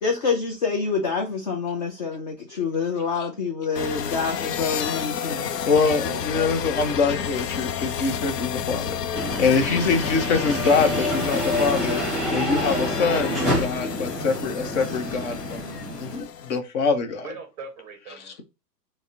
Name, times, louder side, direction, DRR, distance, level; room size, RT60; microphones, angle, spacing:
voice 1, 0.0-5.4 6.0-6.2, left 5 dB, 30° left, 0.4 m, -27 dB
sound 1, 3.7-16.6, left 8 dB, 75° left, 0.7 m, -31 dB
voice 2, 5.6-12.0 12.3-17.3, left 4 dB, 45° left, 0.9 m, -24 dB
sound 2, 9.1-16.2, equal, ahead, 0.9 m, -28 dB
voice 3, 17.1-18.4, right 5 dB, 20° right, 0.6 m, -41 dB
4.0 x 2.1 x 3.6 m
hypercardioid pair, 125°, 49 cm